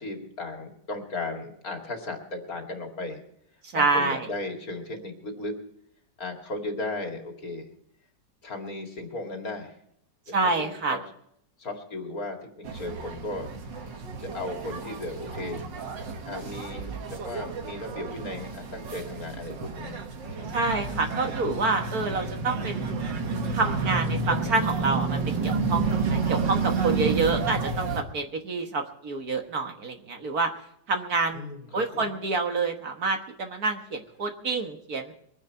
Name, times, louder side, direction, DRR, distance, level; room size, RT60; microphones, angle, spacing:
voice 1, 0.0-3.2 3.7-5.6 6.2-7.7 8.4-9.8 10.3-11.0 11.6-13.5 14.2-15.7 16.3-20.0 20.3-20.5 24.0-24.6 31.3-31.7 31.9-32.2, left 2 dB, 50° left, 3 dB, 2.5 m, -36 dB
voice 2, 3.7-4.3 10.3-11.0 20.5-23.0 23.5-30.5 30.9-31.4 31.7-35.1, right 3 dB, 55° right, 4 dB, 1.7 m, -27 dB
sound 1, 12.6-28.0, right 4 dB, 75° right, 2.1 m, -30 dB
23.5 x 9.9 x 4.4 m, 0.73 s
omnidirectional pair, 2.0 m